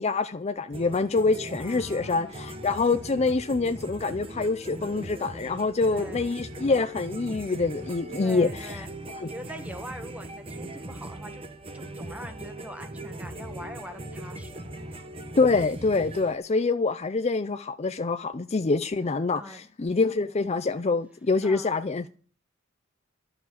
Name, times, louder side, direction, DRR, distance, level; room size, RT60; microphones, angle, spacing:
voice 1, 0.0-8.8 9.2-9.3 15.4-22.1, left 3 dB, 30° left, 0.5 m, -26 dB
sound 1, 0.7-16.4, right 1 dB, 25° right, 1.2 m, -40 dB
voice 2, 1.6-2.4 5.9-6.3 8.2-8.9 9.2-11.4 11.7-14.7 19.3-19.7 21.4-21.7, equal, 5° right, 1.6 m, -43 dB
12.0 x 7.0 x 8.5 m
head